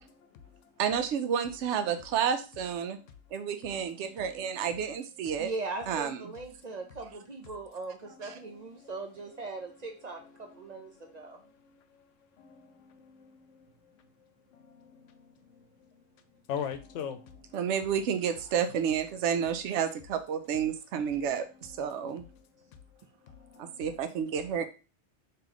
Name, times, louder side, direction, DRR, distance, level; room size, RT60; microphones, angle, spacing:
voice 1, 0.2-0.8 2.9-3.0 3.6-4.7 6.7-6.9 8.0-9.0 10.2-12.1 12.4-14.1 14.5-16.0 16.3-17.6 21.1-21.3 21.7-22.1 22.6-22.8 23.2-23.9, left 8 dB, 85° left, 9 dB, 0.9 m, -45 dB
voice 2, 0.8-3.0 3.3-5.5 5.9-6.2 8.2-8.3 17.5-22.2 23.6-24.7, right 8 dB, 75° right, 9 dB, 0.9 m, -30 dB
voice 3, 5.4-10.2 10.5-11.4, right 3 dB, 50° right, 4 dB, 0.5 m, -39 dB
3.0 x 2.8 x 3.9 m, 0.32 s
omnidirectional pair, 1.2 m